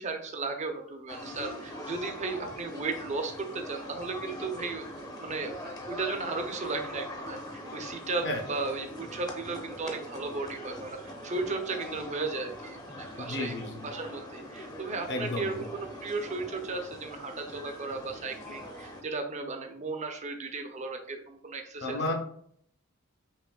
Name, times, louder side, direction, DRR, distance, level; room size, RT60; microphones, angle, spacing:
voice 1, 0.0-4.9 5.1-5.5 5.9-22.0, right 3 dB, 35° right, 5 dB, 0.6 m, -35 dB
sound 1, 1.1-19.0, left 1 dB, 20° left, 0.7 m, -42 dB
voice 2, 13.2-13.9 15.1-15.4 21.8-22.1, left 2 dB, 55° left, 2 dB, 0.9 m, -32 dB
5.3 x 2.9 x 2.3 m, 0.65 s
head